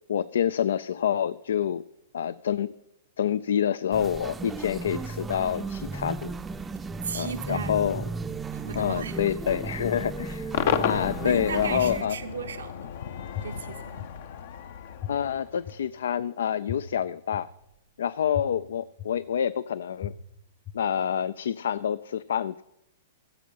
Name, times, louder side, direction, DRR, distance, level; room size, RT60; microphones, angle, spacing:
voice 1, 0.1-1.9 2.1-2.7 3.2-6.3 7.1-8.0 8.8-10.5 10.8-12.2 15.1-17.5 18.0-20.1 20.7-22.6, left 9 dB, 80° left, 0.3 m, -27 dB
sound 1, 3.9-12.0, right 3 dB, 15° right, 0.5 m, -35 dB
voice 2, 7.0-7.9 8.5-9.3 11.2-12.9 13.4-14.1, right 6 dB, 85° right, 0.7 m, -36 dB
Cheering / Crowd / Fireworks, 10.5-15.8, left 8 dB, 60° left, 0.7 m, -33 dB
sound 2, 13.3-13.4 14.0-14.1 15.0-15.1 15.6-15.7 16.7-16.8 17.3-17.4 18.3-18.4 19.0-19.1 20.0-20.1 20.6-20.7, left 13 dB, 40° left, 1.3 m, -33 dB
15.0 x 7.5 x 5.5 m
hypercardioid pair, 135°, 0 cm